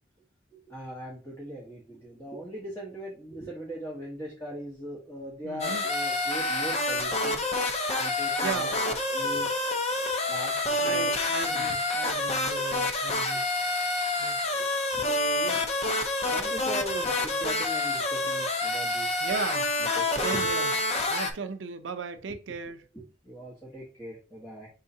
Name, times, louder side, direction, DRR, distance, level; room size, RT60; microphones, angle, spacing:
voice 1, 0.5-7.4 8.0-9.5 10.0-11.1 11.5-11.8 12.5-12.7 13.3-13.4 14.5-15.7 16.3-19.2 19.8-20.5 22.3-22.4 22.9-24.7, right 1 dB, 15° left, 1.2 m, -40 dB
voice 2, 5.4-5.8 8.4-8.8 10.8-13.5 14.2-14.4 19.2-19.7 20.2-20.7 21.1-22.9, right 5 dB, 90° right, 0.5 m, -36 dB
sound 1, 5.6-21.3, left 2 dB, 35° left, 0.6 m, -28 dB
5.4 x 3.7 x 2.7 m
head